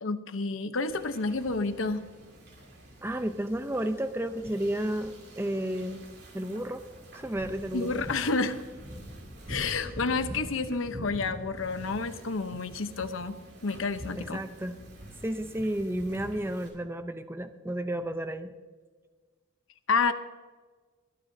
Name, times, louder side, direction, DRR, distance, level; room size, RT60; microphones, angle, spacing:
voice 1, 0.0-2.1 7.7-8.6 9.5-14.4 19.9-20.1, left 4 dB, 80° left, 10 dB, 0.9 m, -30 dB
Wind / Ocean, 0.9-16.7, equal, 50° right, 2.8 m, -45 dB
voice 2, 3.0-6.0 6.3-6.8 7.1-8.0 9.7-9.8 14.1-14.8 15.2-18.5, right 1 dB, 10° right, 9 dB, 0.6 m, -32 dB
21.0 x 10.0 x 2.7 m, 1.5 s
head